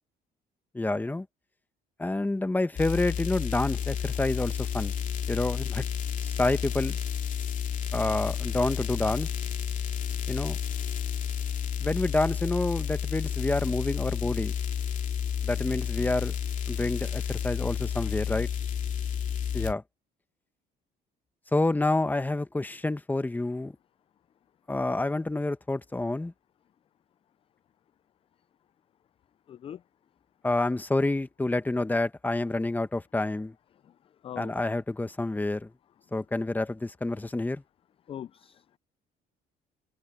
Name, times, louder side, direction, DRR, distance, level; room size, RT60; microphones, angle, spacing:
voice 1, 0.7-1.3 2.0-4.9 5.3-5.9 6.2-7.0 7.9-9.3 10.3-10.6 11.8-14.5 15.4-16.3 16.7-18.5 19.5-19.8 21.5-23.8 24.7-26.3 30.4-33.5 34.4-35.7 36.1-37.6, left 2 dB, 10° left, 1.3 m, -28 dB
sound 1, 2.8-19.7, left 8 dB, 50° left, 2.8 m, -31 dB
voice 2, 29.5-29.8 34.2-34.5 38.1-38.8, left 9 dB, 35° left, 0.3 m, -41 dB
cardioid pair, 110°, 17 cm